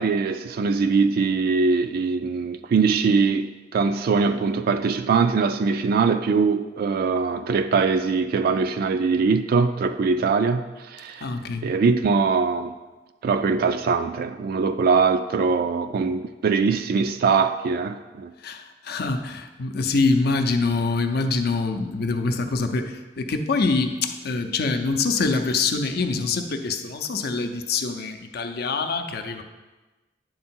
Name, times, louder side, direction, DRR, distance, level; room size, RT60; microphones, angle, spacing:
voice 1, 0.0-11.3 11.6-12.7 13.2-18.3, right 5 dB, 55° right, 0.3 m, -22 dB
voice 2, 11.2-11.7 18.4-29.4, left 3 dB, 60° left, 0.6 m, -25 dB
9.4 x 3.8 x 4.4 m
head